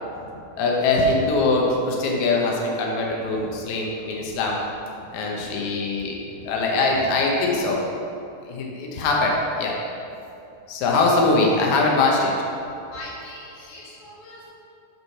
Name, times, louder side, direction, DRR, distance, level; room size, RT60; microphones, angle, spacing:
voice 1, 0.6-4.6 5.1-7.8 8.5-9.8 10.7-12.3, left 3 dB, 80° left, -1 dB, 1.7 m, -22 dB
voice 2, 12.9-14.5, left 1 dB, 55° left, -6 dB, 2.4 m, -41 dB
8.3 x 4.7 x 5.7 m, 2.6 s
omnidirectional pair, 4.7 m